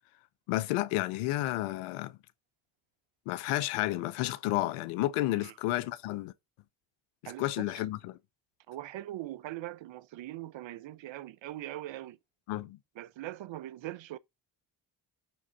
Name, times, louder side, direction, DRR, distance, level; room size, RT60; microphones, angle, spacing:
voice 1, 0.5-2.1 3.3-6.3 7.2-8.2 12.5-12.8, left 16 dB, 85° left, 0.7 m, -31 dB
voice 2, 7.3-7.8 8.7-12.2 13.0-14.2, right 14 dB, 65° right, 0.8 m, -41 dB
10.5 x 3.7 x 5.7 m
hypercardioid pair, 50°, 50 cm